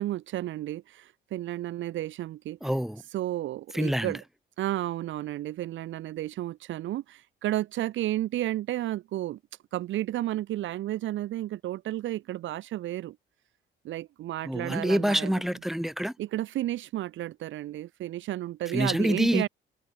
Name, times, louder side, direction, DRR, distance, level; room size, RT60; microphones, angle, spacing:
voice 1, 0.0-2.6 3.1-4.2 4.6-9.4 9.7-13.2 13.8-15.3 16.2-19.5, right 14 dB, 75° right, 0.7 m, -32 dB
voice 2, 2.6-3.0 3.7-4.2 14.4-16.1 18.7-19.4, equal, ahead, 3.6 m, -26 dB
cardioid pair, 90°, 20 cm